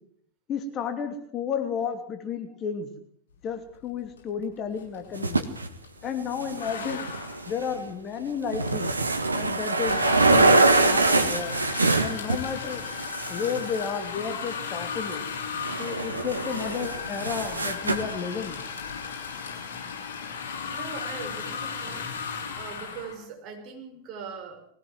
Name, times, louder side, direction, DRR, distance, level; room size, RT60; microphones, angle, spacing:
voice 1, 0.5-2.9 3.4-5.5 6.0-7.1 7.5-8.9 9.3-11.5 12.0-12.8 13.3-15.2 15.8-18.6, left 6 dB, 30° left, 6 dB, 2.8 m, -32 dB
sound 1, 4.2-4.4 4.7-6.0 6.5-23.1, left 6 dB, 60° left, 7.8 m, -36 dB
sound 2, 5.1-5.7 6.2-7.8 8.3-12.4 12.7-14.2 15.1-15.2 15.6-18.1, right 2 dB, 80° right, 1.8 m, -24 dB
voice 2, 20.7-22.1 22.6-24.7, right 5 dB, 35° right, 2 dB, 6.3 m, -40 dB
21.5 x 16.5 x 7.8 m, 0.64 s
figure-of-eight pair, 90°, 0 cm